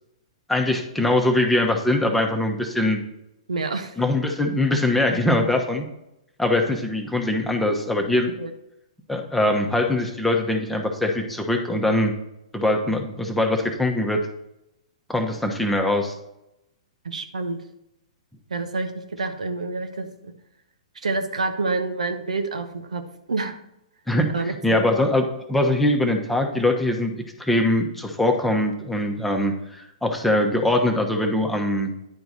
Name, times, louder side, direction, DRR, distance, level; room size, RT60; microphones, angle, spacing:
voice 1, 0.5-3.0 4.0-5.8 6.4-8.3 9.1-12.1 12.5-14.2 15.1-16.1 24.1-27.1 27.4-31.9, left 1 dB, 5° left, 2 dB, 1.0 m, -22 dB
voice 2, 3.5-4.0 8.4-8.5 17.0-17.6 18.5-20.3 21.0-23.0 23.3-23.5 24.3-24.8, right 3 dB, 80° right, 7 dB, 1.0 m, -28 dB
10.5 x 4.6 x 4.1 m, 0.86 s
hypercardioid pair, 120°, 4 cm